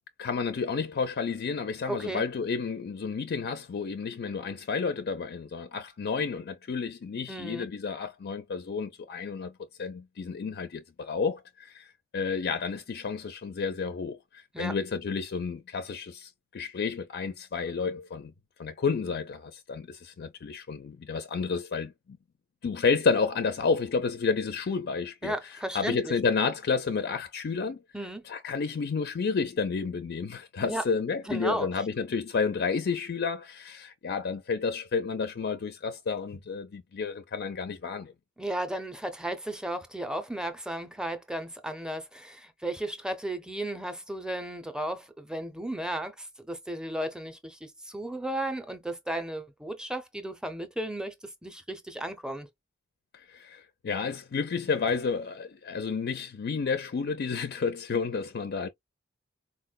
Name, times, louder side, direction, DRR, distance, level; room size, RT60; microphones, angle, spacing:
voice 1, 0.2-9.5 9.8-18.3 18.6-22.2 22.6-27.8 28.3-38.1 53.1-58.7, left 5 dB, 55° left, 0.4 m, -31 dB
voice 2, 1.9-2.2 7.3-7.7 14.5-14.7 25.2-26.1 27.9-28.3 30.6-30.8 31.3-31.7 38.4-51.1 51.4-52.5, right 1 dB, 5° right, 0.6 m, -34 dB
4.2 x 2.1 x 2.3 m
head